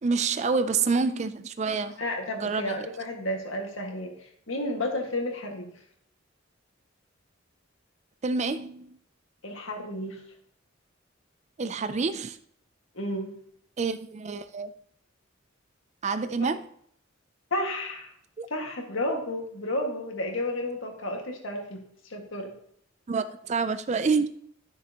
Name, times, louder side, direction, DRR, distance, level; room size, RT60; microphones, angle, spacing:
voice 1, 0.0-2.0 2.4-2.9 8.2-9.0 11.6-12.4 13.8-14.7 16.0-16.6 18.4-18.5 23.1-24.3, right 4 dB, 35° right, 11 dB, 0.4 m, -27 dB
voice 2, 2.0-4.1 4.5-5.7 9.4-10.2 12.9-13.4 16.4-16.5 17.5-18.1 18.5-22.5, left 1 dB, 80° left, 2 dB, 1.9 m, -32 dB
12.5 x 6.8 x 2.9 m, 0.67 s
head